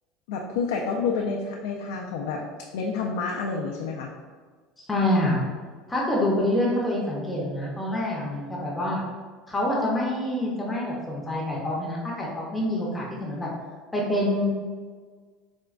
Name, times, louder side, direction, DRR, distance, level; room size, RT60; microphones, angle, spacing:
voice 1, 0.3-2.4 2.7-4.1, left 5 dB, 85° left, 0 dB, 0.3 m, -29 dB
voice 2, 4.8-5.4 5.9-9.0 9.5-13.5 13.9-14.5, left 1 dB, 10° left, -4 dB, 0.6 m, -26 dB
4.2 x 2.2 x 2.4 m, 1.5 s
supercardioid pair, 135°, 0 cm